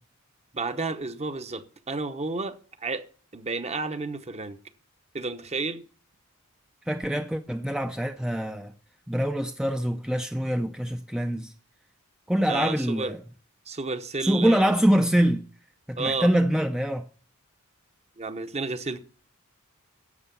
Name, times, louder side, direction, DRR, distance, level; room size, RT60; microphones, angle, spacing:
voice 1, 0.5-3.0 3.3-4.6 5.1-5.8 12.5-13.1 13.7-14.8 16.0-16.3 18.2-19.0, right 3 dB, 30° right, 1.0 m, -31 dB
voice 2, 6.9-8.7 9.1-11.5 12.3-13.2 14.2-15.5 15.9-17.0, equal, 5° right, 0.5 m, -24 dB
11.0 x 8.2 x 6.9 m
head